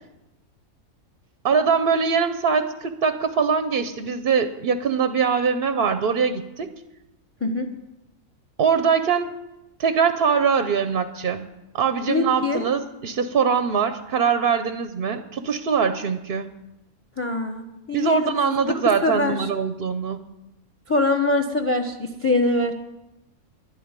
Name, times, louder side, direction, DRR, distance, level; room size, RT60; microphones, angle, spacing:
voice 1, 1.4-6.7 8.6-9.4 9.8-11.5 11.7-16.5 17.9-20.2, right 6 dB, 50° right, 10 dB, 0.7 m, -22 dB
voice 2, 12.1-12.7 17.2-18.4 18.7-19.5 20.9-22.7, left 2 dB, 10° left, 6 dB, 0.8 m, -23 dB
11.0 x 9.1 x 9.6 m, 0.96 s
omnidirectional pair, 1.5 m